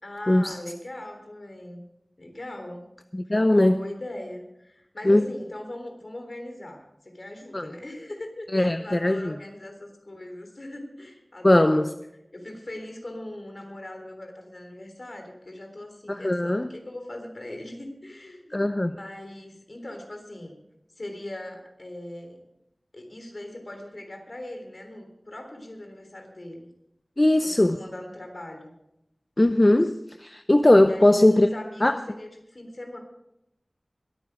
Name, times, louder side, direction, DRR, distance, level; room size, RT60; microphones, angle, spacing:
voice 1, 0.0-1.8 2.2-2.9 3.5-12.0 12.3-20.6 21.0-22.4 22.9-26.7 27.4-28.7 30.8-33.0, left 1 dB, 55° left, 4 dB, 3.6 m, -40 dB
voice 2, 3.1-3.8 5.0-5.3 7.5-7.7 8.5-9.3 11.4-11.9 16.1-16.7 18.5-19.0 27.2-27.8 29.4-31.5 31.8-32.0, left 1 dB, 30° left, 10 dB, 0.6 m, -20 dB
21.5 x 9.4 x 5.1 m, 0.85 s
wide cardioid pair, 60°, 0 cm